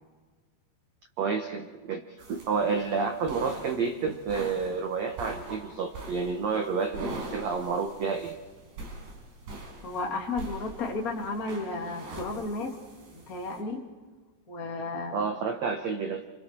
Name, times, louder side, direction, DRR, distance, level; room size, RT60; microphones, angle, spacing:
voice 1, 1.2-8.4 15.1-16.2, right 5 dB, 90° right, 5 dB, 1.5 m, -30 dB
sound 1, 2.2-13.6, right 2 dB, 70° right, 6.9 m, -43 dB
voice 2, 9.8-12.8 13.1-13.9 14.5-15.3, left 3 dB, 30° left, -1 dB, 1.9 m, -33 dB
29.5 x 27.5 x 4.5 m, 1.4 s
omnidirectional pair, 5.1 m